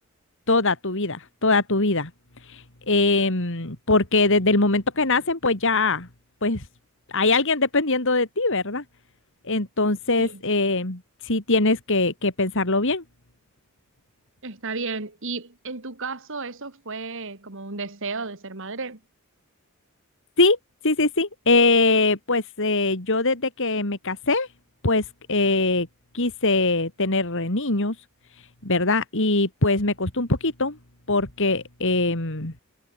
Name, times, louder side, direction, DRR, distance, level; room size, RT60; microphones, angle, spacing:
voice 1, 0.5-2.1 2.5-6.1 6.4-6.6 7.1-8.8 9.4-13.0 20.4-20.6 20.8-24.5 24.8-25.9 26.1-27.9 28.6-30.8 31.1-32.5, left 3 dB, 60° left, 3.1 m, -22 dB
voice 2, 14.4-19.0, right 3 dB, 60° right, 2.6 m, -33 dB
head